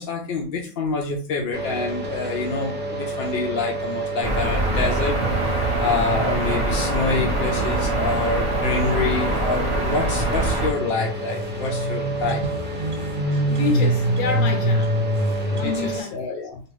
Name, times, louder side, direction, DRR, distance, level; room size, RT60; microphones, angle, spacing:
voice 1, 0.0-5.1 5.4-12.4 15.5-16.6, left 4 dB, 60° left, 0.6 m, -27 dB
sound 1, 1.5-16.0, right 1 dB, 15° right, 0.4 m, -30 dB
sound 2, 4.2-10.7, right 2 dB, 30° right, 0.9 m, -24 dB
sound 3, 10.9-11.0 11.2-15.9, right 1 dB, 70° right, 0.9 m, -24 dB
voice 2, 13.5-15.0 15.6-16.5, left 5 dB, 75° left, 1.0 m, -28 dB
2.8 x 2.5 x 3.1 m
omnidirectional pair, 1.4 m